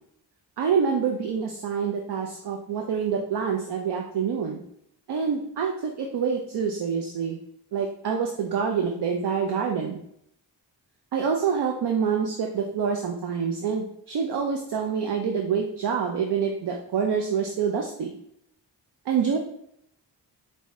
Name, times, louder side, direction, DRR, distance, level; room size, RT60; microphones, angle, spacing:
voice 1, 0.6-4.6 5.1-7.4 7.7-10.0 11.1-18.1 19.1-19.4, right 6 dB, 65° right, 2 dB, 0.6 m, -26 dB
4.7 x 2.7 x 3.1 m, 0.72 s
cardioid pair, 60°, 43 cm